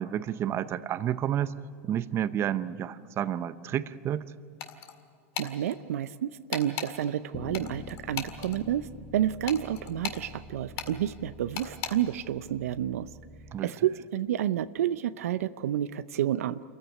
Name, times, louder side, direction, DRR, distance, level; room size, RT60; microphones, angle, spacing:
voice 1, 0.0-1.5 1.8-4.2 13.5-13.7, right 10 dB, 35° right, 14 dB, 0.7 m, -30 dB
sound 1, 4.6-5.0 5.3-5.5 6.5-6.9 7.5-8.6 9.5-10.2 10.8-10.9 11.6-11.9, left 10 dB, 55° left, 2.0 m, -35 dB
voice 2, 5.4-13.1 13.6-16.6, right 11 dB, 80° right, 14 dB, 0.6 m, -30 dB
Bass guitar, 7.3-13.6, left 3 dB, 25° left, 0.9 m, -46 dB
26.5 x 15.0 x 9.5 m, 2.3 s
hypercardioid pair, 115°, 8 cm